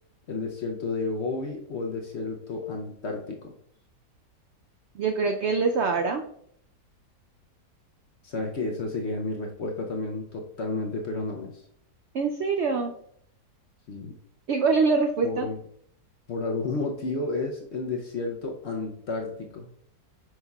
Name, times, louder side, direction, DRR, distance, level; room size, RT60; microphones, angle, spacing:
voice 1, 0.3-3.5 8.2-11.6 13.9-14.1 15.2-15.6 16.3-19.7, left 3 dB, 55° left, 1 dB, 0.8 m, -31 dB
voice 2, 4.9-6.2 12.1-13.0 14.5-15.5, right 4 dB, 85° right, 4 dB, 0.6 m, -24 dB
7.7 x 5.4 x 2.3 m, 0.68 s
omnidirectional pair, 1.8 m